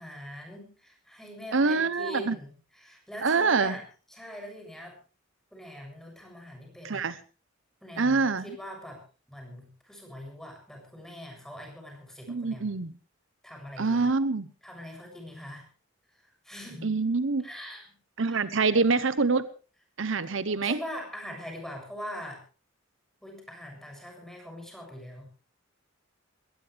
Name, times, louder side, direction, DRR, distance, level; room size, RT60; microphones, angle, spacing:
voice 1, 0.0-3.8 4.1-5.0 5.5-7.1 7.8-9.0 9.3-12.8 13.4-14.1 14.6-15.7 16.2-16.9 17.4-18.0 18.3-18.4 20.6-22.4 23.2-25.2, equal, ahead, 2 dB, 7.2 m, -42 dB
voice 2, 1.5-2.4 3.2-3.8 6.8-7.2 8.0-8.5 12.3-12.9 13.8-14.5 16.8-17.4 18.2-19.5 20.0-20.8, right 4 dB, 70° right, 15 dB, 0.8 m, -25 dB
21.0 x 18.5 x 3.4 m, 0.36 s
head